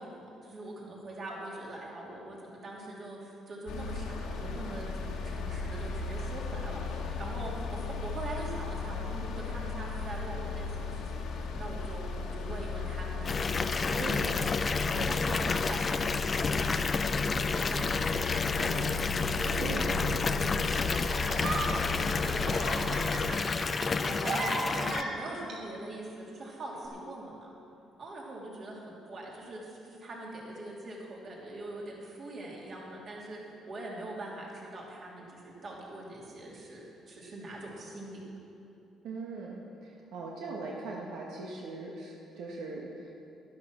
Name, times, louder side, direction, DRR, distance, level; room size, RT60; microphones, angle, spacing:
voice 1, 0.0-12.1 12.3-14.2 14.7-19.0 19.4-23.7 24.0-27.5 28.0-38.2, right 1 dB, 45° right, -3 dB, 3.0 m, -43 dB
sound 1, 3.7-23.3, left 4 dB, 85° left, 1.6 m, -36 dB
Water tap faucet / Bathtub (filling or washing) / Fill (with liquid), 13.2-25.0, left 4 dB, 30° left, 0.4 m, -30 dB
voice 2, 14.0-14.5 14.9-15.2 19.6-19.9 39.0-43.2, right 3 dB, 85° right, -2 dB, 1.5 m, -40 dB
sound 2, 20.7-25.5 26.7-26.9, right 2 dB, 65° right, 2.9 m, -35 dB
12.0 x 11.5 x 6.0 m, 2.8 s
cardioid pair, 125°, 0 cm